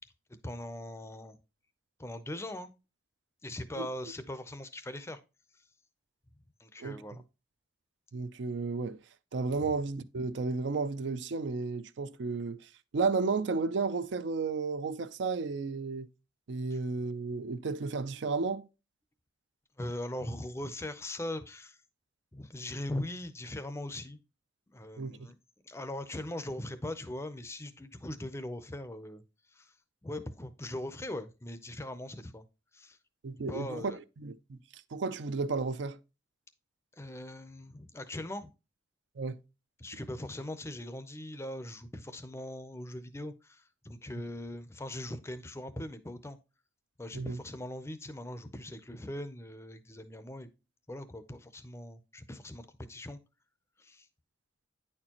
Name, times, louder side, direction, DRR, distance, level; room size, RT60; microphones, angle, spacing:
voice 1, 0.4-1.4 2.0-2.7 3.4-5.2 6.6-7.2 9.6-9.7 19.8-21.8 22.3-24.2 24.7-25.3 25.6-29.2 29.5-29.7 30.0-32.5 32.7-33.0 33.5-34.0 36.9-38.5 39.8-46.4 47.0-50.5 50.9-53.2 53.8-54.1, left 1 dB, 15° left, 0.5 m, -40 dB
voice 2, 8.1-9.0 9.3-16.1 16.5-18.6 25.0-25.3 33.2-33.9 34.2-36.0 39.2-39.4 47.1-47.4, right 4 dB, 65° right, 0.4 m, -33 dB
9.5 x 4.4 x 2.9 m
head